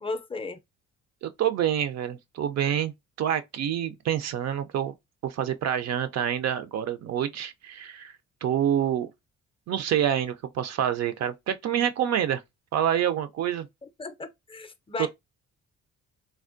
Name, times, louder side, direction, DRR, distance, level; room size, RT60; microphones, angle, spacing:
voice 1, 0.0-0.6 14.0-15.1, left 3 dB, 20° left, 0.4 m, -35 dB
voice 2, 1.2-2.9 3.2-4.9 5.2-8.1 8.4-9.1 9.7-12.4 12.7-13.7 15.0-15.1, right 10 dB, 60° right, 0.4 m, -27 dB
3.4 x 2.1 x 2.4 m
cardioid pair, 90°, 30 cm